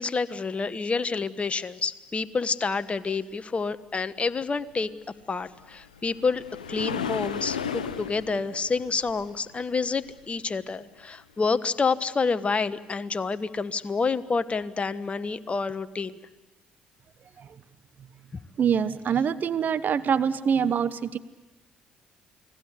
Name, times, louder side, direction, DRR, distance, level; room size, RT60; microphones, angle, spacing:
voice 1, 0.0-4.9 5.3-6.4 6.7-16.2, left 4 dB, 30° left, 13 dB, 1.3 m, -28 dB
sound 1, 5.4-10.6 14.5-14.6 15.2-15.3, left 7 dB, 90° left, 0.9 m, -35 dB
voice 2, 18.6-21.2, right 7 dB, 50° right, 15 dB, 1.0 m, -25 dB
29.5 x 21.0 x 8.2 m, 1.1 s
hypercardioid pair, 50°, 4 cm